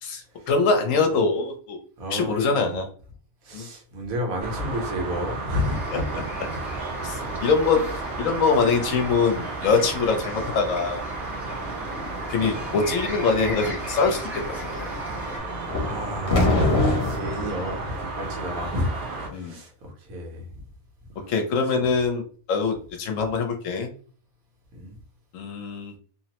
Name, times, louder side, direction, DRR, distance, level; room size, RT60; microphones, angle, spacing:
voice 1, 0.0-1.8 2.1-2.9 3.5-3.7 7.0-11.0 12.3-14.2 14.6-14.7 19.3-19.6 21.2-22.2 22.5-23.9 25.3-25.9, left 4 dB, 70° left, 0.9 m, -23 dB
voice 2, 2.0-2.8 3.4-5.8 6.1-6.3 6.5-6.6 12.5-12.6 15.8-20.6 21.2-21.3 21.7-21.9 23.1-23.2 24.7-25.0, left 1 dB, 75° right, 1.3 m, -31 dB
sound 1, 4.4-19.3, right 3 dB, 60° right, 0.8 m, -33 dB
sound 2, 5.6-15.4, left 1 dB, 5° right, 0.4 m, -38 dB
sound 3, 15.7-17.5, left 2 dB, 50° left, 0.9 m, -23 dB
2.9 x 2.0 x 2.8 m
omnidirectional pair, 1.5 m